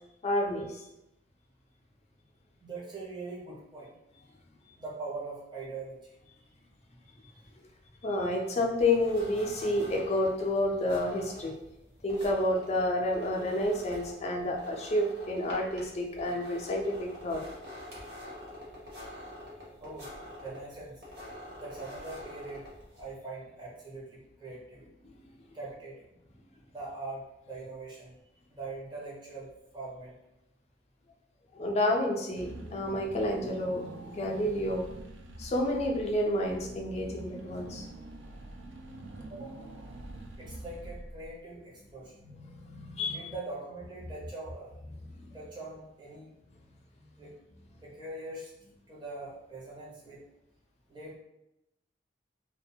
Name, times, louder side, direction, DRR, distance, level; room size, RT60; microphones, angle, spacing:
voice 1, 0.2-0.8 8.0-11.5 12.0-17.4 31.5-34.8 35.4-37.9 42.2-43.2 45.1-45.3, left 1 dB, 35° left, 0 dB, 0.4 m, -30 dB
voice 2, 2.6-3.9 4.8-6.2 19.8-20.1 20.4-21.0 21.6-22.6 23.0-24.9 25.5-26.1 26.7-28.2 28.5-30.1 39.3-39.7 40.4-42.2 43.1-44.7 45.3-46.3 47.2-47.3 47.8-48.5 48.9-50.2 50.9-51.2, right 3 dB, 25° right, -5 dB, 0.7 m, -42 dB
sound 1, 8.8-23.2, left 1 dB, 65° right, 0.8 m, -47 dB
Car / Engine, 32.4-41.5, right 2 dB, 85° right, 0.4 m, -45 dB
2.3 x 2.1 x 2.6 m, 0.88 s
head